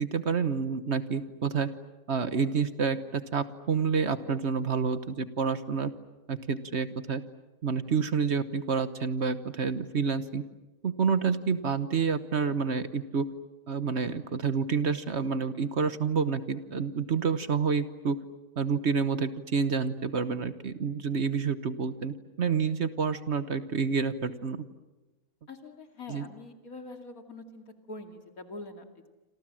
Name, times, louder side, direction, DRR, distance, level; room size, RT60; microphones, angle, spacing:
voice 1, 0.0-1.7 2.1-5.9 6.3-7.2 7.6-10.4 10.8-13.3 13.7-18.2 18.6-24.6 26.1-26.3, right 5 dB, 50° right, 12 dB, 1.3 m, -28 dB
voice 2, 25.5-29.1, left 2 dB, 70° left, 5 dB, 2.9 m, -44 dB
28.0 x 27.0 x 7.6 m, 1.1 s
omnidirectional pair, 1.6 m